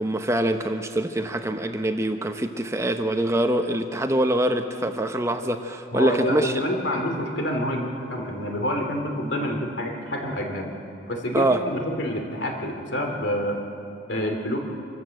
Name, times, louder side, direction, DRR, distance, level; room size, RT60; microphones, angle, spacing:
voice 1, 0.0-6.5 11.3-11.6, right 1 dB, 15° right, 7 dB, 0.8 m, -24 dB
voice 2, 5.9-10.7 11.1-13.6 14.1-14.6, equal, 65° left, 3 dB, 3.0 m, -27 dB
26.0 x 14.0 x 7.8 m, 2.6 s
head